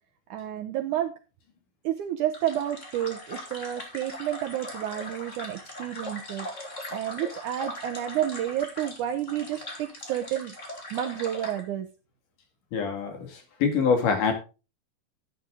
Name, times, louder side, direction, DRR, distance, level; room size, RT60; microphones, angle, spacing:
voice 1, 0.3-1.2 1.8-6.5 6.9-10.5 10.9-11.9, right 11 dB, 75° right, 6 dB, 1.9 m, -30 dB
sound 1, 2.3-11.6, left 1 dB, 20° left, 2.6 m, -40 dB
voice 2, 12.7-14.3, left 5 dB, 60° left, 5 dB, 3.6 m, -25 dB
13.0 x 8.6 x 3.7 m, 0.31 s
omnidirectional pair, 4.3 m